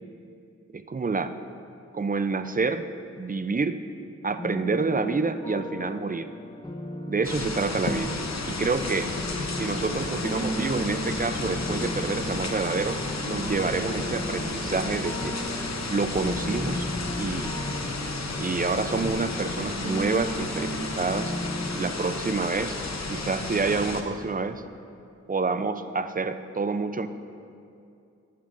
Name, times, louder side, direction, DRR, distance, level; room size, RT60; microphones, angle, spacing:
voice 1, 0.7-1.3 1.9-2.9 3.2-3.8 4.2-6.3 7.1-8.2 8.4-9.1 9.6-13.0 13.2-15.4 15.9-16.9 17.2-17.5 18.4-21.3 21.7-22.8 23.1-24.6 25.3-27.1, right 4 dB, 30° right, 10 dB, 0.5 m, -28 dB
sound 1, 4.4-21.9, equal, 15° left, 1.0 m, -36 dB
sound 2, 7.2-24.0, left 3 dB, 60° left, 0.9 m, -32 dB
12.5 x 11.5 x 2.6 m, 2.5 s
cardioid pair, 50°, 30 cm